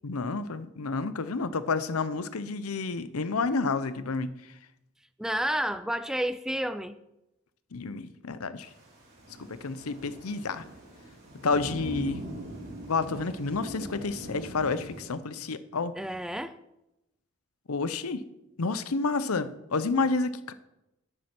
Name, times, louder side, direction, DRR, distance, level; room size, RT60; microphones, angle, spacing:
voice 1, 0.0-4.3 7.7-8.7 9.5-10.6 11.4-12.2 12.9-15.9 17.7-18.2 18.6-20.5, left 4 dB, 85° left, 14 dB, 0.7 m, -30 dB
voice 2, 5.2-7.0 16.0-16.6, equal, ahead, 12 dB, 0.3 m, -30 dB
Thunder / Rain, 8.6-15.0, right 1 dB, 45° right, 4.0 m, -42 dB
9.5 x 8.8 x 6.0 m, 0.91 s
head